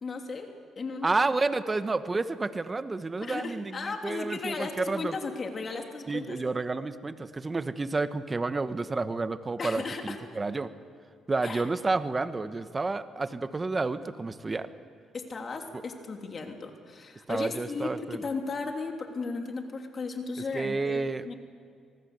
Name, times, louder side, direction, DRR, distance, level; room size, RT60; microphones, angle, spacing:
voice 1, 0.0-0.5 0.7-1.1 3.2-6.4 9.6-10.2 11.4-11.6 15.1-21.3, left 4 dB, 40° left, 4 dB, 3.2 m, -35 dB
voice 2, 1.0-5.2 6.1-10.7 11.3-14.7 17.3-18.2 20.5-21.3, right 3 dB, 25° right, 11 dB, 1.1 m, -30 dB
26.5 x 19.5 x 8.1 m, 2.2 s
cardioid pair, 90°, 0 cm